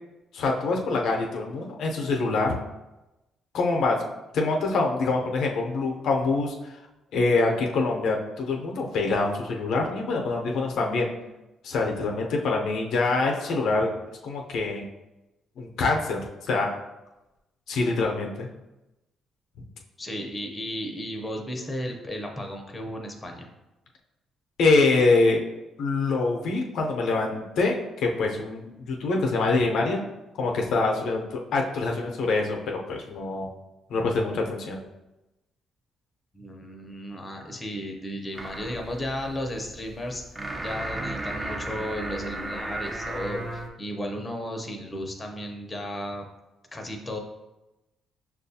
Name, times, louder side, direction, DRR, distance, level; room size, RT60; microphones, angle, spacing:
voice 1, 0.3-2.5 3.5-4.0 4.3-6.5 7.1-11.1 11.6-13.9 14.2-14.8 15.6-16.7 17.7-18.5 24.6-25.4 25.8-30.0 30.4-33.5 33.9-34.8, left 3 dB, 75° left, 1 dB, 0.6 m, -25 dB
voice 2, 20.0-23.5 36.3-40.2 40.6-46.3 46.7-47.2, equal, 20° left, 2 dB, 0.7 m, -34 dB
sound 1, 38.3-43.7, right 2 dB, 15° right, 0.5 m, -35 dB
6.0 x 2.3 x 2.7 m, 0.99 s
cardioid pair, 90°, 0 cm